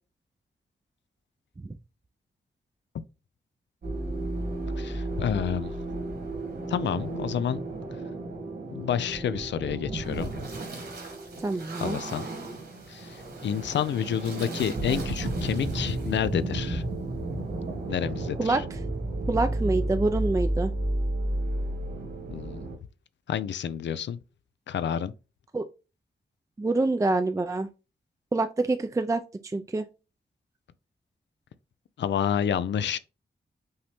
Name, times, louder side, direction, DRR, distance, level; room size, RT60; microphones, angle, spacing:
sound 1, 3.8-22.8, right 2 dB, 60° right, 1.9 m, -32 dB
voice 1, 4.8-5.7 6.7-7.6 8.7-10.3 11.8-12.3 12.9-16.8 17.9-18.6 22.3-22.7 23.3-24.2 24.7-25.1 32.0-33.0, left 9 dB, 80° left, 0.4 m, -29 dB
voice 2, 11.4-12.0 18.4-18.6 19.3-20.7 25.5-25.7 26.6-27.7 28.3-29.9, right 2 dB, 15° right, 0.4 m, -26 dB
5.5 x 2.7 x 3.4 m
cardioid pair, 85°, 19 cm